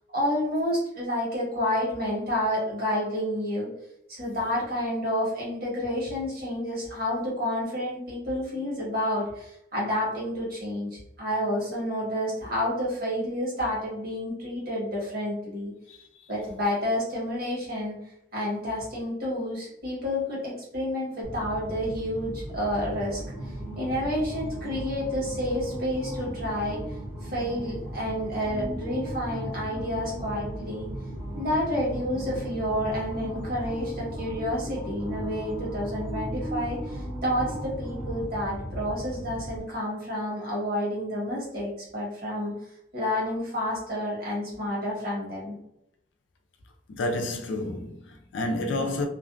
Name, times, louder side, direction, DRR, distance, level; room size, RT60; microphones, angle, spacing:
voice 1, 0.1-3.7 4.1-10.9 11.2-15.7 16.3-18.0 18.3-23.2 23.8-26.8 27.2-30.9 31.3-42.5 42.9-45.5, left 1 dB, 55° right, 1.2 m, -29 dB
sound 1, 21.2-39.6, right 1 dB, 10° right, 0.8 m, -36 dB
voice 2, 46.9-49.1, left 2 dB, 85° left, 0.4 m, -30 dB
2.5 x 2.2 x 2.4 m
head